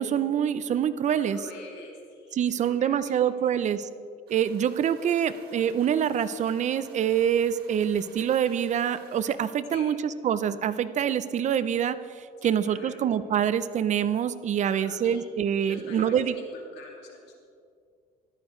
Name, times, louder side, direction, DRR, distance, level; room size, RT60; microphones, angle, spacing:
voice 1, 0.0-1.4 2.3-3.9 4.3-16.3, right 9 dB, 45° right, 14 dB, 0.5 m, -26 dB
voice 2, 1.2-3.7 9.7-9.9 12.4-13.0 14.6-15.2 15.6-17.5, left 3 dB, 85° left, 0 dB, 2.3 m, -46 dB
sound 1, 4.3-9.4, right 5 dB, 70° right, 2.0 m, -54 dB
14.0 x 11.5 x 3.2 m, 2.3 s
cardioid pair, 110°, 17 cm